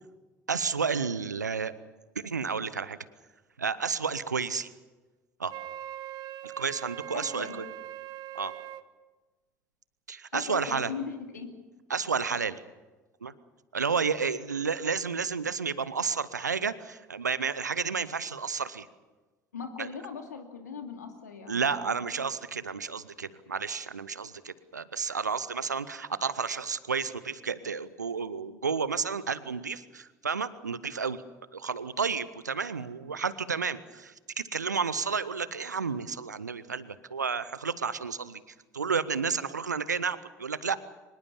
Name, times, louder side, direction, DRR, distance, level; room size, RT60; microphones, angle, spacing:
voice 1, 0.5-1.7 2.2-3.0 3.6-4.7 5.4-5.5 6.4-7.7 8.3-8.5 10.1-10.9 11.9-12.6 13.2-13.3 13.7-18.9 19.8-19.9 21.5-31.2 31.5-38.4 38.7-40.8, right 5 dB, 85° right, 16 dB, 0.7 m, -31 dB
Wind instrument woodwind instrument, 5.5-8.9, right 13 dB, 50° right, 1.2 m, -41 dB
voice 2, 7.1-7.5 10.3-11.5 19.5-22.0, left 6 dB, 80° left, 4 dB, 2.6 m, -39 dB
24.5 x 21.0 x 7.1 m, 1.2 s
figure-of-eight pair, 60°, 9 cm